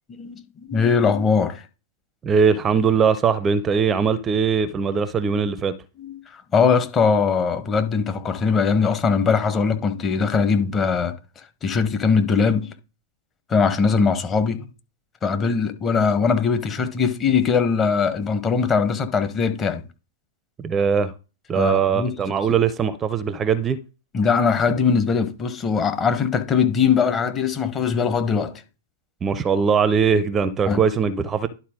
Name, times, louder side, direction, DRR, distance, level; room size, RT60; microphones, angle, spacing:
voice 1, 0.1-1.6 6.0-6.2 6.5-11.1 11.6-12.7 13.5-14.7 15.2-19.8 21.5-22.1 24.1-28.5 30.7-30.8, left 5 dB, 20° left, 1.1 m, -21 dB
voice 2, 2.2-5.7 20.6-21.1 21.5-23.8 29.2-31.5, right 6 dB, 20° right, 0.6 m, -20 dB
11.5 x 4.2 x 3.7 m
figure-of-eight pair, 110°, 0 cm